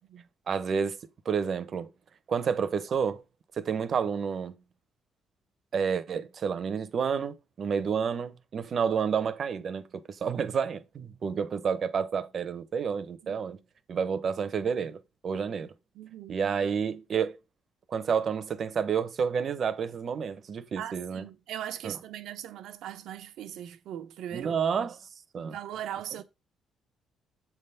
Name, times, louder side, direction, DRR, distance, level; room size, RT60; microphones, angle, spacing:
voice 1, 0.5-1.0 1.2-1.9 2.3-3.2 3.5-4.6 5.7-13.6 13.9-15.7 16.3-17.4 17.9-21.2 21.8-22.0 24.3-25.0 25.3-25.6, right 6 dB, 55° right, 0.8 m, -30 dB
voice 2, 15.9-16.4 20.8-24.5 25.4-26.2, right 11 dB, 85° right, 0.8 m, -39 dB
7.3 x 3.6 x 5.6 m
cardioid pair, 90°, 0 cm